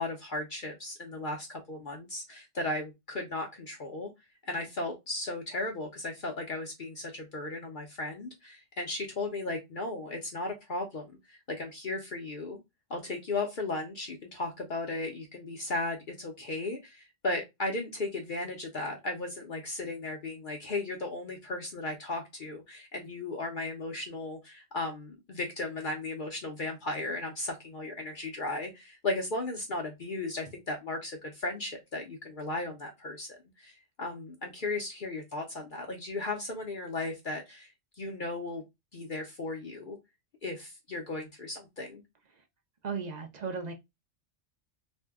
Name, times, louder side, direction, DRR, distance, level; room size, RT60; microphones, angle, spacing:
voice 1, 0.0-4.1 4.4-12.6 12.9-33.3 33.6-37.7 38.0-38.6 38.9-40.0 40.4-42.0, left 2 dB, 50° left, 0.7 m, -36 dB
voice 2, 42.8-43.7, right 5 dB, 50° right, 0.6 m, -35 dB
2.6 x 2.1 x 3.4 m
omnidirectional pair, 1.2 m